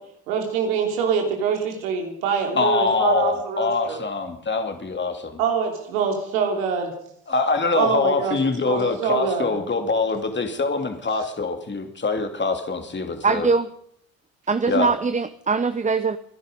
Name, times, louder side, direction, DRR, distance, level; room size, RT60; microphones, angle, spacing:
voice 1, 0.3-4.0 5.4-6.9 7.7-8.4 8.6-9.5, right 6 dB, 85° right, 2 dB, 3.3 m, -24 dB
voice 2, 2.5-5.4 7.3-13.5 14.7-14.9, left 3 dB, 25° left, 6 dB, 2.8 m, -24 dB
voice 3, 13.2-13.7 14.5-16.2, right 4 dB, 20° right, 11 dB, 0.9 m, -22 dB
24.5 x 11.0 x 5.3 m, 0.68 s
hypercardioid pair, 60°, 41 cm